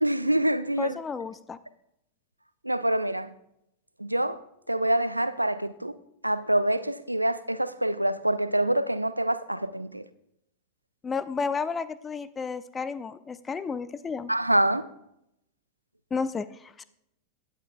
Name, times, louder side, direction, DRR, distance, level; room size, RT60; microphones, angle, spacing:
voice 1, 0.0-1.0 2.6-3.3 4.0-4.4 4.7-5.9 6.2-10.0 14.3-14.8, right 1 dB, 85° right, 0.4 m, -26 dB
voice 2, 0.8-1.6 11.0-14.3 16.1-16.8, left 5 dB, 20° left, 0.4 m, -32 dB
16.0 x 9.4 x 2.2 m
figure-of-eight pair, 90°, 0 cm